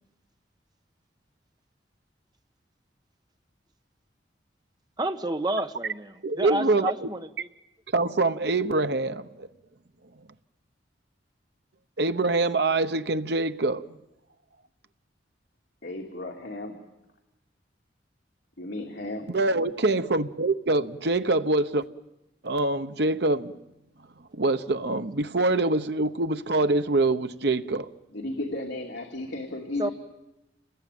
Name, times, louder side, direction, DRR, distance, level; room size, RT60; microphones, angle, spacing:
voice 1, 5.0-7.5 29.8-29.9, right 2 dB, 25° right, 1.3 m, -30 dB
voice 2, 6.2-7.1 7.9-9.5 12.0-13.9 19.3-21.8 22.4-23.5 24.3-27.9, right 2 dB, 60° right, 1.0 m, -25 dB
voice 3, 15.8-16.8 18.6-19.3 28.1-29.9, left 2 dB, 70° left, 2.8 m, -34 dB
28.5 x 20.5 x 9.3 m
head